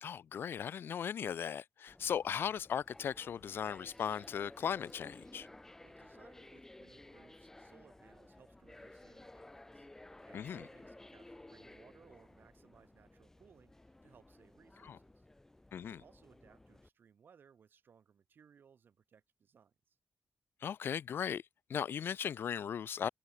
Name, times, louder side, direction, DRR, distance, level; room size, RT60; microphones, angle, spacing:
voice 1, 0.0-5.5 10.3-10.6 14.9-15.0 15.7-16.0 20.6-21.4 21.7-23.1, left 8 dB, 70° left, 0.4 m, -37 dB
sound 1, 1.9-16.9, left 1 dB, 10° left, 2.4 m, -56 dB
voice 2, 5.8-15.3 15.8-20.0, right 7 dB, 60° right, 4.2 m, -64 dB
wide cardioid pair, 170°, 4 cm